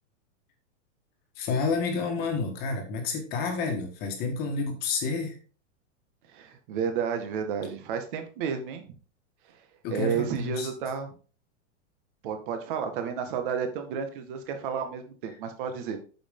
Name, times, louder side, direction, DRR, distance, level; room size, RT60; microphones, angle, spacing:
voice 1, 1.4-5.4 9.8-10.7, left 4 dB, 25° left, 3 dB, 1.8 m, -29 dB
voice 2, 6.3-9.0 9.5-9.6 9.9-11.1 12.2-16.0, right 7 dB, 45° right, 6 dB, 1.8 m, -31 dB
8.9 x 7.0 x 3.7 m, 0.38 s
supercardioid pair, 170°, 37 cm